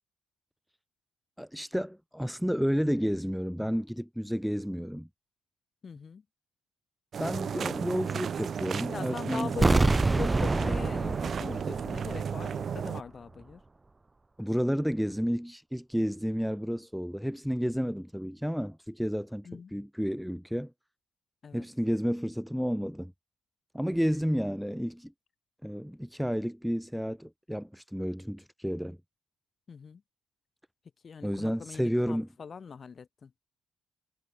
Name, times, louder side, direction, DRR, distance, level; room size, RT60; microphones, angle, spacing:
voice 1, 1.4-5.1 7.2-9.9 14.4-20.7 21.5-23.1 23.7-25.1 25.6-29.0 31.2-32.3, equal, ahead, 3.8 m, -31 dB
voice 2, 5.8-6.2 8.9-13.6 19.4-19.7 21.4-21.7 29.7-30.0 31.0-33.3, left 6 dB, 45° left, 6.4 m, -42 dB
sound 1, 7.1-13.0, right 7 dB, 50° right, 1.4 m, -34 dB
sound 2, 9.6-12.5 12.7-12.8, right 2 dB, 20° right, 1.7 m, -26 dB
cardioid pair, 90°, 0 cm